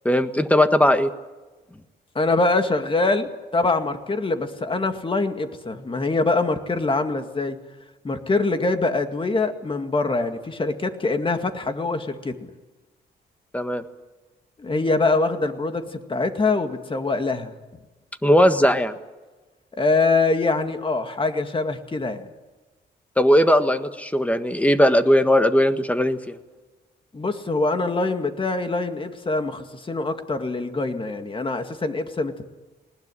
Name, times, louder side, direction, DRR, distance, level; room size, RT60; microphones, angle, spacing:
voice 1, 0.0-1.1 13.5-13.8 18.2-18.9 23.2-26.4, equal, 10° left, 9 dB, 1.5 m, -18 dB
voice 2, 2.1-7.6 8.0-12.5 14.6-17.5 19.7-22.3 27.1-32.5, left 3 dB, 30° left, 7 dB, 2.1 m, -24 dB
20.0 x 19.0 x 10.0 m, 1.2 s
cardioid pair, 100°, 18 cm